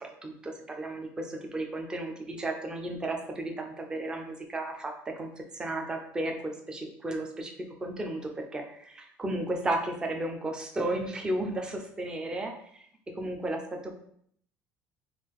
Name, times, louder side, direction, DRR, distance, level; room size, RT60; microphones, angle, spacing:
voice 1, 0.0-7.5 7.8-13.9, right 1 dB, 15° right, 3 dB, 0.4 m, -34 dB
3.2 x 2.4 x 3.6 m, 0.65 s
cardioid pair, 155°, 6 cm